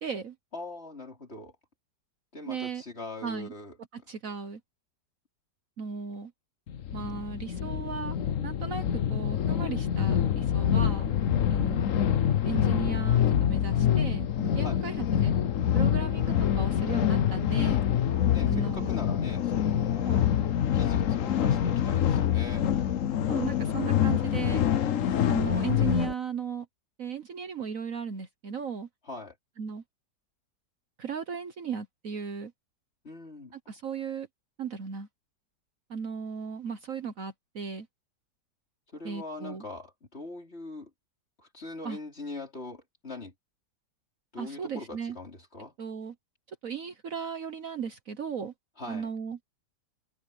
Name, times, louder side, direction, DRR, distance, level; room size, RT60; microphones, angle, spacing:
voice 1, 0.0-0.3 2.5-2.8 3.2-3.5 3.9-4.6 5.8-6.3 6.9-8.2 8.4-11.2 11.5-11.9 12.4-15.3 15.7-17.8 18.5-18.9 20.0-20.3 23.3-24.6 25.3-26.7 27.0-28.9 29.6-29.8 31.0-32.5 33.7-34.3 34.6-35.1 35.9-37.9 39.0-39.6 41.8-42.0 44.4-45.2 45.8-46.1 46.6-48.5 48.9-49.4, right 6 dB, 55° right, 1.4 m, -36 dB
voice 2, 0.5-1.6 2.3-3.8 14.6-14.8 18.2-20.2 20.7-22.6 29.0-29.4 33.0-33.6 38.9-40.9 41.4-43.3 44.3-45.7 48.8-49.1, left 2 dB, 35° left, 4.4 m, -41 dB
sound 1, 6.7-26.1, left 9 dB, 55° left, 1.1 m, -26 dB
omnidirectional pair, 1.9 m